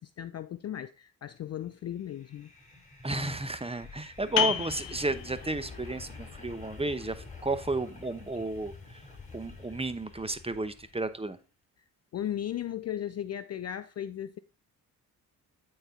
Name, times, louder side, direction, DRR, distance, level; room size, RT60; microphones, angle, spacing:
voice 1, 0.0-2.5 12.1-14.4, left 10 dB, 35° left, 0.4 m, -36 dB
sound 1, 2.0-11.2, left 4 dB, 15° left, 3.5 m, -48 dB
voice 2, 3.0-6.1 6.4-8.7 9.3-11.4, right 2 dB, 15° right, 0.9 m, -32 dB
sound 2, 4.4-9.7, left 11 dB, 65° left, 0.9 m, -36 dB
8.9 x 4.3 x 3.7 m
hypercardioid pair, 50°, 46 cm